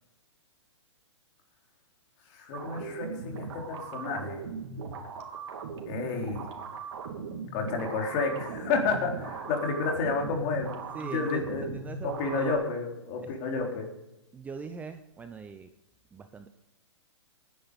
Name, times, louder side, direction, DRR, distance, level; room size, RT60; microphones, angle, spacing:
voice 1, 2.3-4.4 5.9-6.4 7.5-11.7 12.0-13.9, left 4 dB, 35° left, 2 dB, 3.9 m, -31 dB
sound 1, 2.5-12.5, right 4 dB, 60° right, 3.1 m, -39 dB
voice 2, 10.9-12.5 14.3-15.7 16.1-16.5, right 5 dB, 10° right, 8 dB, 0.6 m, -41 dB
18.5 x 10.5 x 5.3 m, 0.92 s
hypercardioid pair, 145°, 16 cm